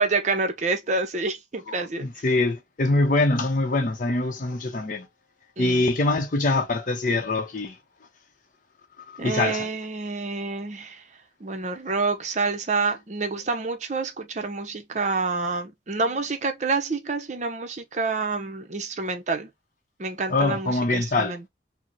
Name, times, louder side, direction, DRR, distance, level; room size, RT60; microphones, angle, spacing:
voice 1, 0.0-2.1 5.6-5.9 9.2-11.1 11.4-19.5 20.0-21.5, right 3 dB, 40° right, 0.6 m, -28 dB
voice 2, 2.0-5.1 5.6-7.7 9.1-9.6 20.3-21.3, left 2 dB, 50° left, 0.6 m, -23 dB
4.0 x 2.0 x 2.9 m
head